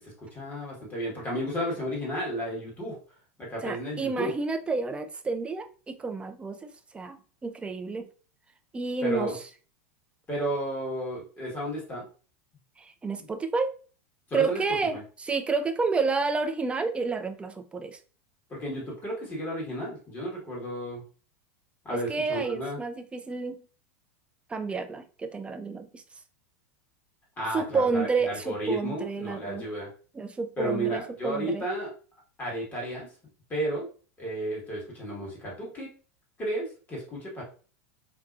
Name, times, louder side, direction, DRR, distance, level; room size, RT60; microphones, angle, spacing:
voice 1, 0.0-3.0 3.4-4.3 9.0-9.3 10.3-12.1 13.2-13.3 14.3-14.6 14.9-15.0 18.5-21.0 21.8-22.8 27.4-29.9 30.6-31.9 32.4-33.1 33.5-33.9 34.2-35.9 36.4-37.4, right 1 dB, 20° left, 1.4 m, -33 dB
voice 2, 3.6-8.1 8.7-9.4 12.8-13.7 14.3-18.0 21.9-23.6 24.5-26.0 27.5-29.6 30.1-31.6, right 4 dB, 15° right, 0.3 m, -30 dB
2.7 x 2.2 x 2.4 m
hypercardioid pair, 115°, 8 cm